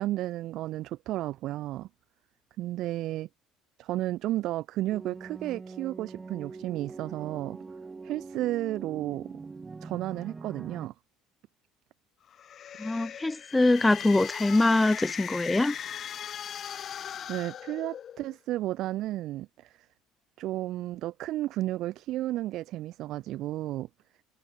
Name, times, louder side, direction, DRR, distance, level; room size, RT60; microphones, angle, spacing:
voice 1, 0.0-1.9 2.6-3.3 3.8-7.6 8.0-9.4 9.8-10.9 16.7-19.9 20.4-23.9, right 15 dB, 60° right, 0.4 m, -33 dB
sound 1, 4.9-10.9, right 4 dB, 20° right, 4.0 m, -43 dB
sound 2, 12.3-18.4, left 9 dB, 45° left, 1.1 m, -39 dB
voice 2, 12.8-15.7, left 2 dB, 10° left, 0.5 m, -23 dB
supercardioid pair, 105°, 0 cm